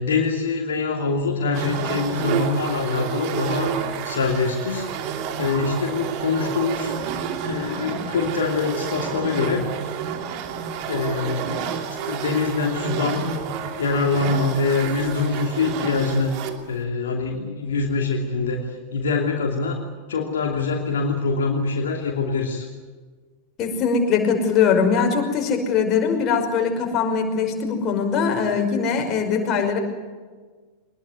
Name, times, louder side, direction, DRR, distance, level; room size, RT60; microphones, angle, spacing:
voice 1, 0.0-4.9 5.4-6.9 7.4-9.7 10.9-11.7 12.0-13.3 13.6-16.3 16.7-19.8 20.1-22.7, left 4 dB, 65° left, 1 dB, 2.8 m, -24 dB
sound 1, 1.5-16.7, right 7 dB, 45° right, 2.7 m, -29 dB
voice 2, 23.6-29.8, left 6 dB, 30° left, 2 dB, 5.6 m, -21 dB
23.5 x 21.0 x 9.5 m, 1.4 s
figure-of-eight pair, 90°, 0 cm